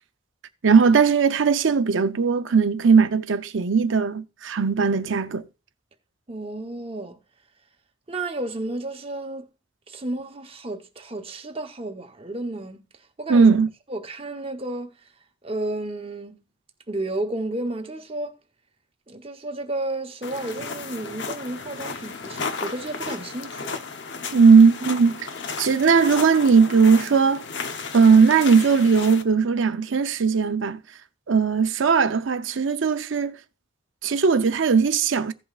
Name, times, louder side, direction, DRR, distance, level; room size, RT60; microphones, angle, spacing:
voice 1, 0.6-5.5 13.3-13.7 24.3-25.2 25.6-27.4 27.9-30.8 31.3-33.4 34.0-35.3, right 5 dB, 70° right, 0.6 m, -18 dB
voice 2, 6.3-7.2 8.1-9.5 9.9-12.8 13.2-13.5 13.9-14.9 15.4-16.4 16.9-18.3 19.1-23.8, right 2 dB, 30° right, 0.9 m, -32 dB
sound 1, 20.2-29.2, left 4 dB, 60° left, 0.8 m, -34 dB
16.5 x 5.5 x 2.4 m
head